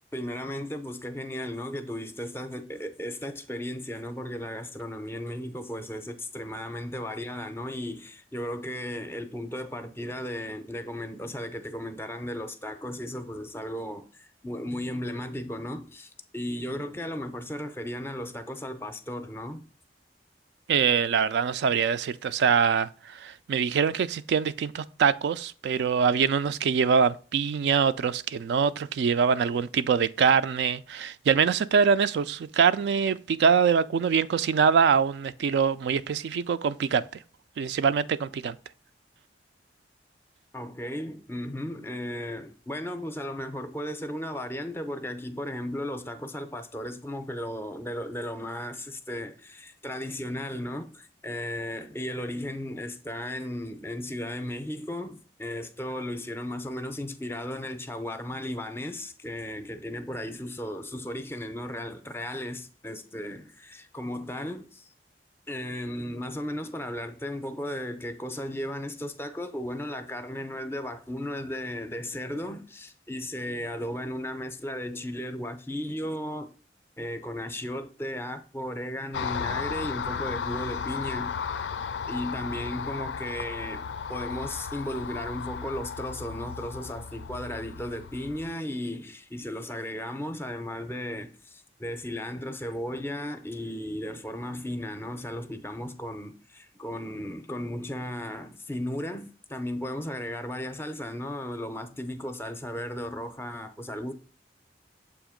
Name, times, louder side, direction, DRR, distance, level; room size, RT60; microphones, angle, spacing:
voice 1, 0.1-19.6 40.5-64.9 65.5-76.5 77.0-81.3 82.1-104.1, left 1 dB, 15° left, 0.5 m, -35 dB
voice 2, 20.7-37.0 37.6-38.6, right 6 dB, 70° right, 0.3 m, -24 dB
Car passing by, 79.1-88.5, left 6 dB, 85° left, 0.4 m, -35 dB
7.1 x 2.9 x 4.9 m
head